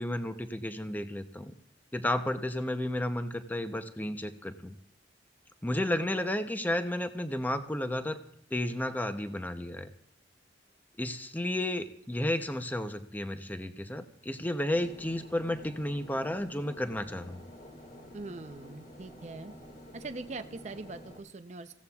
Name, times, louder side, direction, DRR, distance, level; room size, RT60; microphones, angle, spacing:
voice 1, 0.0-1.5 1.9-4.8 5.6-8.2 8.5-9.9 11.0-17.4, left 1 dB, 10° left, 8 dB, 0.6 m, -32 dB
sound 1, 14.7-21.2, equal, 45° left, 2.0 m, -49 dB
voice 2, 18.1-19.5 19.9-21.7, right 3 dB, 40° right, 8 dB, 0.6 m, -42 dB
26.5 x 15.5 x 2.4 m, 0.72 s
head